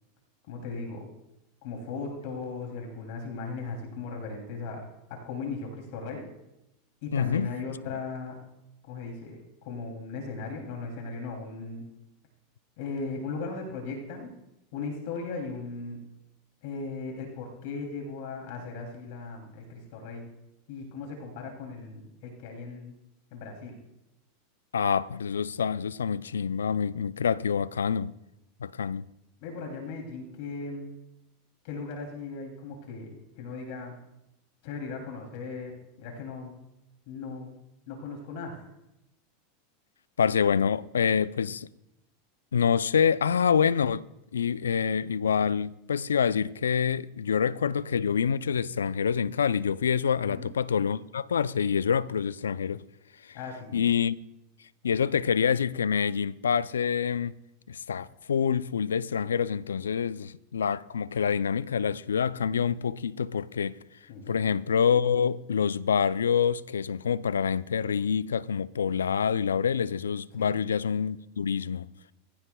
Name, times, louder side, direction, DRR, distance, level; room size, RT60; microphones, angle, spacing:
voice 1, 0.5-1.1 1.6-4.8 5.1-6.2 7.0-8.4 8.9-11.8 12.8-14.3 14.7-16.0 16.6-20.3 20.7-22.9 23.3-23.8 29.4-31.0 31.6-33.9 34.6-36.5 37.1-37.6 37.9-38.6 50.2-50.5 53.3-53.8 64.1-64.4 70.3-70.6, left 4 dB, 60° left, 2.9 m, -37 dB
voice 2, 7.1-7.5 24.7-28.1 28.6-29.1 40.2-41.7 42.5-44.1 44.3-52.8 53.2-53.4 53.7-54.2 54.8-57.3 57.7-63.8 64.3-71.9, left 7 dB, 85° left, 0.4 m, -26 dB
23.0 x 15.0 x 2.3 m
hypercardioid pair, 95°, 0 cm